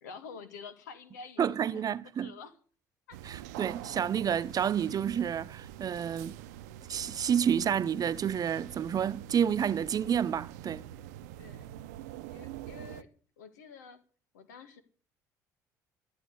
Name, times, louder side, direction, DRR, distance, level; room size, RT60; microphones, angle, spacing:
voice 1, 0.0-2.6 3.1-3.3 11.4-11.7 12.3-13.1 13.4-14.0 14.3-14.8, left 5 dB, 85° left, 2.0 m, -48 dB
voice 2, 1.4-2.3 3.2-6.4 6.9-10.9, right 8 dB, 45° right, 0.8 m, -29 dB
sound 1, 3.1-13.0, right 12 dB, 80° right, 0.7 m, -45 dB
13.5 x 7.7 x 9.9 m
hypercardioid pair, 60°, 9 cm